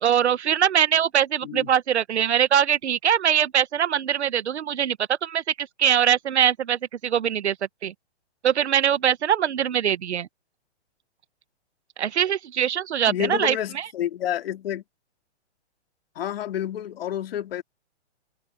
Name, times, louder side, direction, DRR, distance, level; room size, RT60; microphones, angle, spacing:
voice 1, 0.0-7.5 7.8-7.9 8.4-10.3 12.0-13.9, right 9 dB, 75° right, 1.4 m, -22 dB
voice 2, 13.1-14.8 16.1-17.6, left 11 dB, 60° left, 3.0 m, -29 dB
hypercardioid pair, 145°, 34 cm